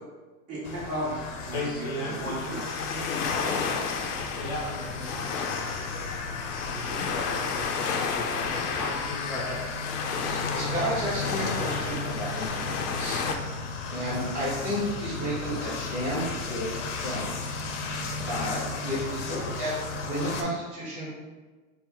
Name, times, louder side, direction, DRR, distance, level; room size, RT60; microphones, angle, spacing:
voice 1, 0.5-2.6, right 1 dB, 45° right, -8 dB, 1.4 m, -35 dB
sound 1, 0.6-20.4, left 4 dB, 55° left, 0.6 m, -35 dB
voice 2, 1.5-3.9 4.3-6.1 6.6-9.6, left 1 dB, 10° left, -5 dB, 0.6 m, -37 dB
sound 2, 2.1-13.4, left 5 dB, 90° left, 0.6 m, -32 dB
voice 3, 10.2-13.2 13.9-17.5 18.3-19.7 20.0-21.1, equal, 15° right, -11 dB, 1.4 m, -32 dB
4.3 x 2.1 x 3.8 m, 1.3 s
hypercardioid pair, 150°, 45 cm